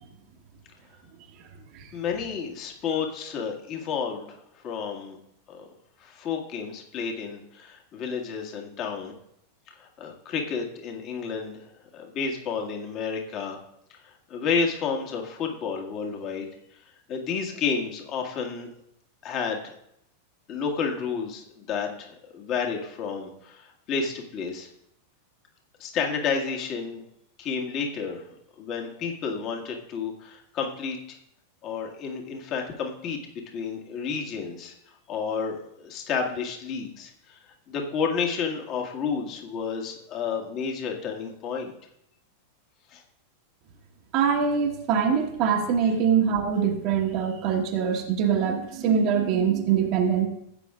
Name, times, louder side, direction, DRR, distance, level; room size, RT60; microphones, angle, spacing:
voice 1, 1.9-5.2 5.5-5.6 6.0-9.1 9.8-11.6 11.9-13.6 13.9-16.5 17.1-18.7 19.2-19.7 20.5-24.7 25.8-27.0 27.4-28.2 28.5-31.2 31.6-33.2 33.5-34.7 35.1-37.4 37.7-41.7 42.9-43.0, left 5 dB, 35° left, 1 dB, 1.8 m, -31 dB
voice 2, 44.1-50.3, right 7 dB, 40° right, 1 dB, 1.4 m, -23 dB
16.0 x 8.4 x 2.5 m, 0.76 s
figure-of-eight pair, 90°, 0 cm